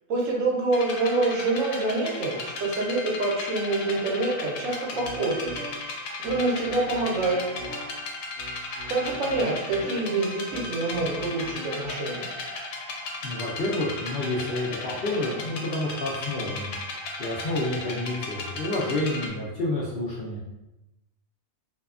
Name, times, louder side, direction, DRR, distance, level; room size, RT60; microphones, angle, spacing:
voice 1, 0.1-5.5 6.2-7.4 8.9-12.3, right 2 dB, 70° right, -3 dB, 1.0 m, -26 dB
sound 1, 0.7-19.3, left 2 dB, 80° left, 1.0 m, -36 dB
sound 2, 4.9-11.9, equal, 55° right, 0.7 m, -41 dB
voice 2, 13.2-16.7 17.2-20.4, left 2 dB, 65° left, -6 dB, 0.6 m, -29 dB
2.7 x 2.2 x 2.3 m, 0.95 s
omnidirectional pair, 1.4 m